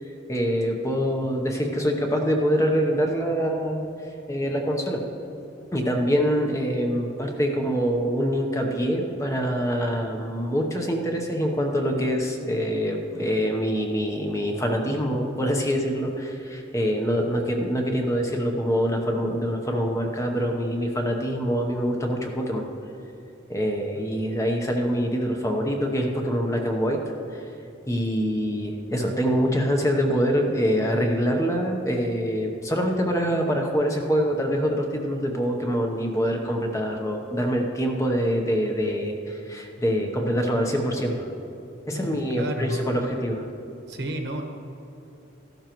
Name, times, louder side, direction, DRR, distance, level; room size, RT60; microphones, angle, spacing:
voice 1, 0.3-3.9 4.3-5.0 5.7-22.6 23.5-27.0 27.3-27.5 27.9-41.3 41.9-43.4, equal, 15° left, 2 dB, 0.8 m, -25 dB
voice 2, 41.9-42.9 43.9-44.4, right 1 dB, 60° right, 2 dB, 1.3 m, -32 dB
14.0 x 12.0 x 3.0 m, 2.9 s
head